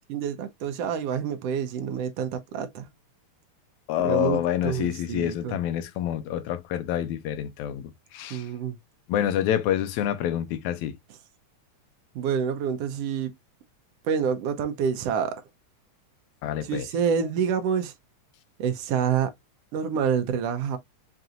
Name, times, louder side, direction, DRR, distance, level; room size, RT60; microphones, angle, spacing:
voice 1, 0.1-2.9 4.0-5.6 8.3-8.8 12.1-13.3 14.0-15.4 16.6-17.9 18.6-19.3 19.7-20.8, right 7 dB, 75° right, 1.5 m, -27 dB
voice 2, 3.9-8.5 9.1-11.0 16.4-16.9, left 11 dB, 80° left, 2.0 m, -27 dB
5.8 x 2.6 x 2.5 m
omnidirectional pair, 3.4 m